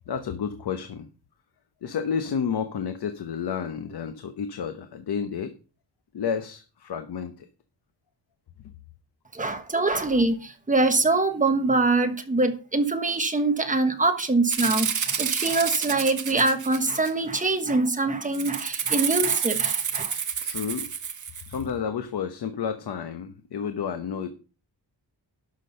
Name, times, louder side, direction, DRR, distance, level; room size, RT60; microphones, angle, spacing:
voice 1, 0.1-1.1 1.8-5.5 6.1-7.5 20.4-20.9 21.5-24.3, left 7 dB, 65° left, 8 dB, 1.0 m, -31 dB
voice 2, 9.3-20.1, right 3 dB, 20° right, 6 dB, 1.3 m, -24 dB
Rattle (instrument), 14.5-17.3 18.3-21.6, right 7 dB, 45° right, 1.1 m, -28 dB
11.5 x 6.3 x 5.6 m, 0.36 s
wide cardioid pair, 175°, 43 cm